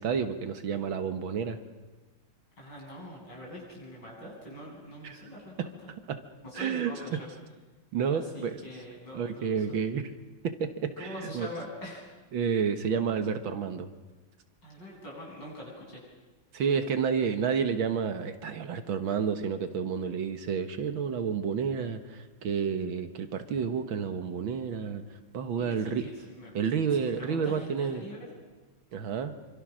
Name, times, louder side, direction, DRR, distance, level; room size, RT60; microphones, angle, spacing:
voice 1, 0.0-1.6 5.0-5.2 5.6-5.7 6.1-6.2 6.6-7.2 7.9-8.6 9.1-10.1 10.4-11.5 12.3-13.9 16.5-25.0 25.3-26.1 26.5-28.0 28.9-29.3, right 6 dB, 70° right, 9 dB, 2.0 m, -30 dB
voice 2, 2.6-5.7 6.4-7.3 8.1-9.8 11.0-12.1 14.6-16.0 25.6-26.5 26.9-28.3, equal, 55° left, -3 dB, 8.9 m, -43 dB
26.5 x 25.5 x 6.3 m, 1.2 s
omnidirectional pair, 2.3 m